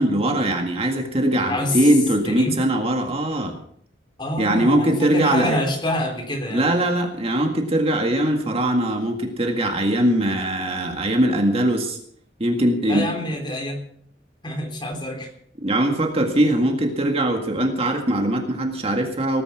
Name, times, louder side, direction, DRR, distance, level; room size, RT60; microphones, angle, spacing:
voice 1, 0.0-3.6 4.4-5.6 6.5-12.0 12.4-13.1 15.6-19.4, right 1 dB, 35° right, 3 dB, 1.9 m, -21 dB
voice 2, 1.5-1.9 2.2-2.6 4.2-6.7 12.8-13.9 14.4-15.3, left 1 dB, 25° left, 3 dB, 3.7 m, -27 dB
18.5 x 9.9 x 5.9 m, 0.64 s
head